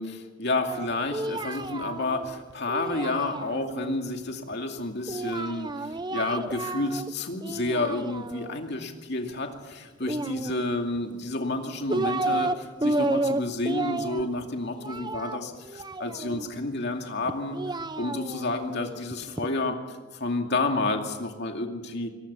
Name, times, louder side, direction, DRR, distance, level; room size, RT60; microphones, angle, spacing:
voice 1, 0.0-22.1, left 2 dB, 50° left, 3 dB, 2.5 m, -30 dB
Singing, 0.7-3.9 5.1-7.1 7.4-8.6 10.0-11.0 11.6-12.6 12.8-16.5 17.3-19.5, right 2 dB, 20° right, 0.7 m, -31 dB
23.0 x 19.0 x 7.0 m, 1.3 s
head